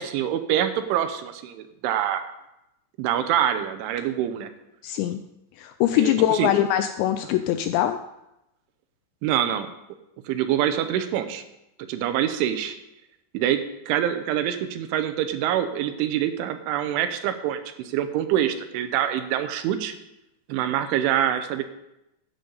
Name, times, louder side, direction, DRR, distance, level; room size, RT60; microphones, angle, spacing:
voice 1, 0.0-2.2 3.0-4.5 5.9-6.5 9.2-9.7 10.3-11.4 11.9-12.8 13.3-13.6 13.9-19.9 20.5-21.6, right 10 dB, 80° right, 9 dB, 3.3 m, -25 dB
voice 2, 4.8-5.2 5.6-8.0, left 12 dB, 85° left, 9 dB, 2.6 m, -22 dB
14.0 x 9.5 x 4.0 m, 0.88 s
omnidirectional pair, 5.6 m